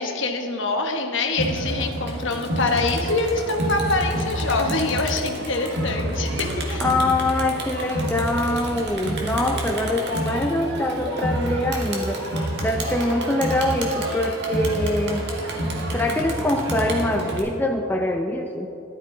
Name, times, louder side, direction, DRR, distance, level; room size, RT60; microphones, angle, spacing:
voice 1, 0.0-6.8, left 3 dB, 55° left, 4 dB, 1.2 m, -25 dB
Crowd, 1.4-17.4, right 1 dB, 50° right, 1.8 m, -28 dB
voice 2, 6.8-12.2 12.6-15.2 15.9-18.7, left 1 dB, 10° left, 2 dB, 0.5 m, -24 dB
14.0 x 11.5 x 3.8 m, 2.9 s
head